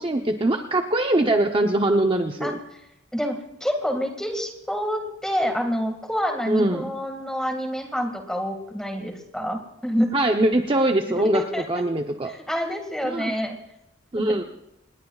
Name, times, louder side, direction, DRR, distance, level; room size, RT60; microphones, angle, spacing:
voice 1, 0.0-2.5 6.5-6.9 10.1-11.4 11.7-12.3 13.0-13.3 14.1-14.4, right 1 dB, 25° right, 3 dB, 0.8 m, -22 dB
voice 2, 3.1-10.1 11.1-11.8 12.3-13.6 14.3-14.4, equal, 5° left, 3 dB, 2.0 m, -27 dB
26.5 x 20.5 x 2.4 m, 0.88 s
head